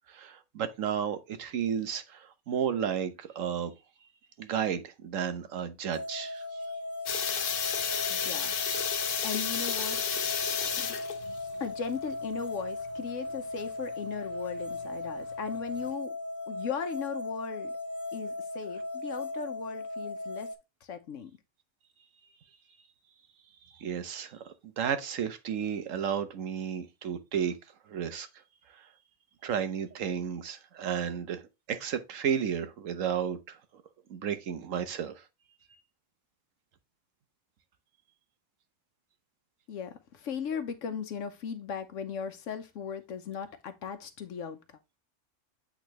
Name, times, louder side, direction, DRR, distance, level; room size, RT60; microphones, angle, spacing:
voice 1, 0.1-3.7 4.4-6.4 23.8-27.5 27.9-28.3 29.4-31.4 31.7-33.6 34.1-35.2, right 8 dB, 85° right, 1.3 m, -32 dB
sound 1, 5.9-20.6, left 2 dB, 30° left, 0.3 m, -37 dB
sound 2, 7.1-15.9, left 7 dB, 50° left, 0.8 m, -33 dB
voice 2, 8.1-8.6 9.2-10.0 10.6-11.0 11.6-16.1 16.5-17.7 18.1-20.5 20.8-21.3 39.7-44.6, left 6 dB, 80° left, 1.1 m, -37 dB
8.3 x 3.8 x 2.9 m
omnidirectional pair, 1.3 m